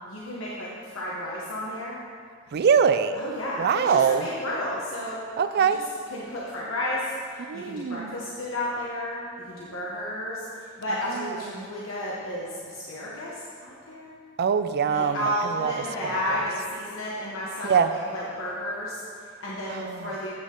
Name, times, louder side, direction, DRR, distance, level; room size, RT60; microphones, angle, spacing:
voice 1, 0.1-2.0 3.1-5.2 5.6-5.8 6.1-14.1 14.9-20.3, equal, 70° left, -6 dB, 1.2 m, -32 dB
voice 2, 2.5-3.2 3.6-4.3 5.4-5.8 7.5-8.3 11.1-11.7 14.4-15.7 16.0-16.2 17.6-17.9 19.7-20.1, right 6 dB, 50° right, 11 dB, 0.3 m, -23 dB
8.3 x 8.2 x 3.7 m, 2.2 s
head